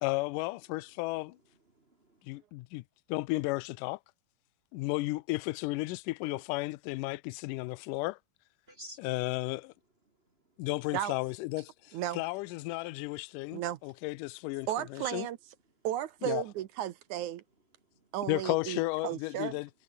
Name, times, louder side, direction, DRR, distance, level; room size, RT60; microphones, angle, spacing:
voice 1, 0.0-1.4 2.2-2.8 3.1-4.0 4.7-8.2 9.0-9.7 10.6-15.3 16.2-16.4 18.3-19.7, left 21 dB, 85° left, 1.9 m, -34 dB
voice 2, 1.7-2.3 8.7-9.1 10.1-10.7 17.8-18.1, equal, 25° right, 1.6 m, -53 dB
voice 3, 14.7-15.4 15.8-17.4 18.1-19.6, right 12 dB, 70° right, 2.0 m, -34 dB
omnidirectional pair, 4.3 m